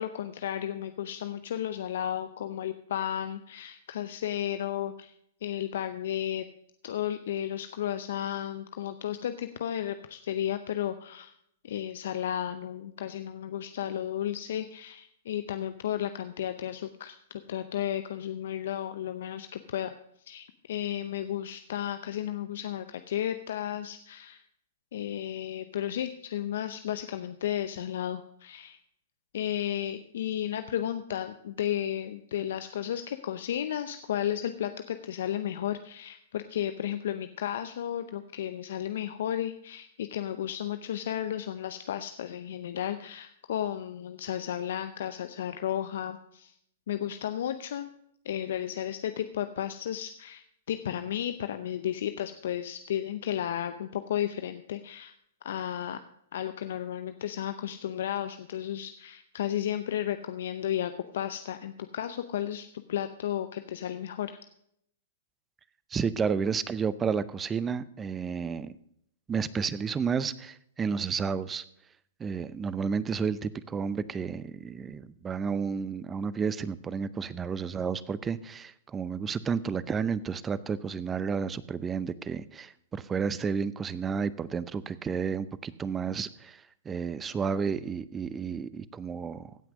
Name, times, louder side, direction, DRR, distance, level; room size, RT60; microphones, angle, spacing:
voice 1, 0.0-5.1 5.4-6.4 6.8-11.3 11.6-19.9 20.3-24.4 24.9-28.8 29.3-46.5 46.9-47.9 48.2-55.1 55.4-56.0 56.3-64.4, left 10 dB, 70° left, 10 dB, 0.7 m, -33 dB
voice 2, 65.9-68.8 69.3-71.6 72.2-89.5, right 6 dB, 20° right, 17 dB, 0.6 m, -31 dB
16.0 x 5.9 x 6.4 m, 0.72 s
hypercardioid pair, 125°, 0 cm